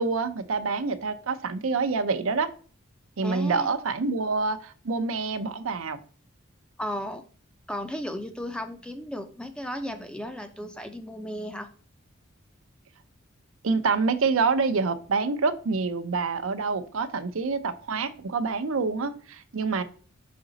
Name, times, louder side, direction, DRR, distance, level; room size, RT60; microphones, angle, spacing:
voice 1, 0.0-2.5 3.2-6.0 13.6-19.8, right 4 dB, 80° right, 0.6 m, -27 dB
voice 2, 3.2-3.7 6.8-7.2 7.7-11.7, equal, 5° left, 0.4 m, -35 dB
5.1 x 4.9 x 3.9 m
head